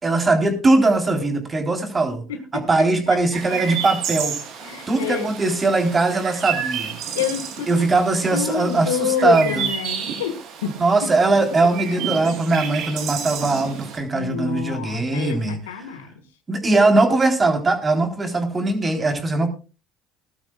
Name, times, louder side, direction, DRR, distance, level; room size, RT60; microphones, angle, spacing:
voice 1, 0.0-2.2 2.5-4.4 4.9-7.0 7.7-9.7 10.8-15.8 16.5-19.5, right 3 dB, 25° right, 5 dB, 3.7 m, -20 dB
voice 2, 2.3-2.7 3.1-3.2 3.5-3.8 4.6-5.4 7.1-7.9 8.3-10.8 12.2-12.4 14.1-16.1, left 8 dB, 90° left, 9 dB, 1.7 m, -28 dB
Chirp tweet, 3.3-14.0, right 8 dB, 65° right, 3.1 m, -31 dB
20.0 x 12.0 x 2.4 m, 0.32 s
hypercardioid pair, 75°, 0 cm